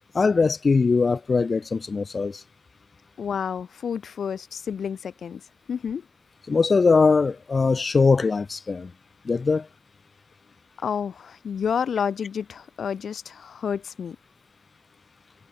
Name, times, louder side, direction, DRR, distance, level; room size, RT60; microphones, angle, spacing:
voice 1, 0.1-2.4 6.5-8.9 9.3-9.7, left 4 dB, 30° left, 3.7 m, -21 dB
voice 2, 3.2-5.4 5.7-6.0 10.8-14.2, left 7 dB, 50° left, 2.1 m, -29 dB
cardioid pair, 90°, 0 cm